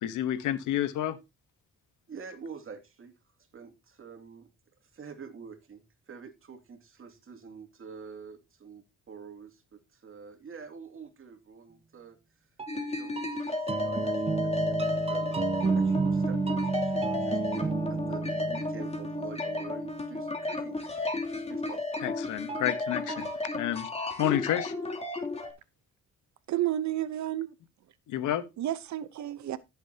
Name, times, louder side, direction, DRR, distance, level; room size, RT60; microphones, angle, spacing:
voice 1, 0.0-1.2 22.0-23.3 23.5-23.9 24.2-24.7 28.1-28.4, left 11 dB, 90° left, 1.3 m, -29 dB
voice 2, 2.1-3.1 3.5-4.5 4.9-12.2 12.7-21.8, right 5 dB, 45° right, 2.6 m, -47 dB
sound 1, 12.6-20.3 22.5-23.4, right 5 dB, 20° right, 0.6 m, -32 dB
sound 2, 12.7-25.5, left 2 dB, 20° left, 3.0 m, -33 dB
voice 3, 26.5-27.5 28.6-29.6, right 13 dB, 65° right, 0.9 m, -31 dB
15.0 x 7.3 x 2.8 m
cardioid pair, 90°, 30 cm